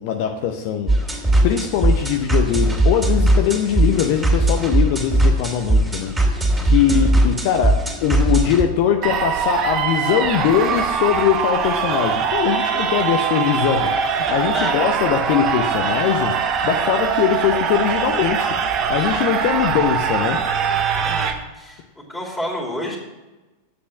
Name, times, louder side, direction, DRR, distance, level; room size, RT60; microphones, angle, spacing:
voice 1, 0.0-6.1 6.6-20.4, left 9 dB, 45° left, 5 dB, 0.7 m, -21 dB
sound 1, 0.9-8.6, right 1 dB, 10° right, 2.7 m, -19 dB
voice 2, 6.7-7.1 14.5-14.8 21.0-21.8 22.1-23.0, equal, 5° left, 0 dB, 2.6 m, -29 dB
sound 2, 9.0-21.3, right 7 dB, 35° right, 1.0 m, -22 dB
8.3 x 7.8 x 6.2 m, 1.1 s
figure-of-eight pair, 90°, 0 cm